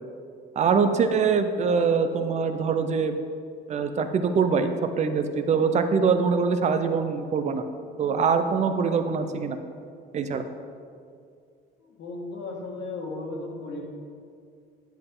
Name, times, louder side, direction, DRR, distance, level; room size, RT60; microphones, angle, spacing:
voice 1, 0.6-3.2 3.7-7.6 8.0-9.6 10.1-10.4, right 5 dB, 35° right, 8 dB, 0.6 m, -23 dB
voice 2, 12.0-13.8, left 2 dB, 65° left, 0 dB, 1.7 m, -35 dB
10.0 x 7.7 x 3.8 m, 2.3 s
cardioid pair, 155°, 20 cm